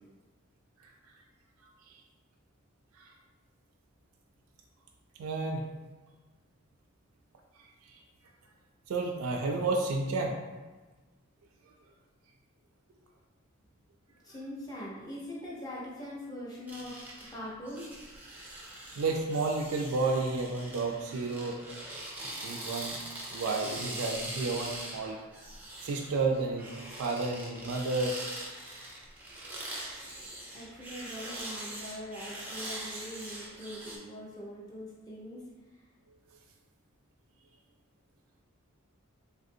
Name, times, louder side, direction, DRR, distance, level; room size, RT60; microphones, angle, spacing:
voice 1, 5.2-5.6 8.9-10.4 19.0-21.6 22.4-23.0 23.3-25.2 25.8-28.2, right 3 dB, 90° right, 2 dB, 0.3 m, -31 dB
voice 2, 14.2-17.0 17.3-17.9 30.5-35.5, left 1 dB, 20° left, -6 dB, 0.7 m, -42 dB
sound 1, 16.7-34.0, right 1 dB, 10° right, 0.4 m, -42 dB
3.3 x 2.5 x 2.6 m, 1.3 s
head